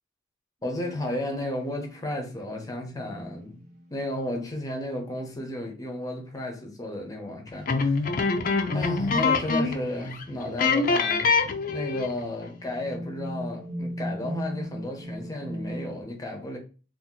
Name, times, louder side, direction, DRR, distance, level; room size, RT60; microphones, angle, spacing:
voice 1, 0.6-3.6 3.9-8.0 8.7-16.6, left 1 dB, 20° left, 0.8 m, -33 dB
sound 1, 0.8-4.5 6.9-7.0 7.7-7.8 8.6-9.7 10.5-11.0 11.7-16.0, equal, 40° right, 0.6 m, -39 dB
sound 2, 7.7-9.9 10.1-10.2 10.6-12.2, left 4 dB, 45° left, 0.5 m, -24 dB
2.8 x 2.5 x 3.7 m
head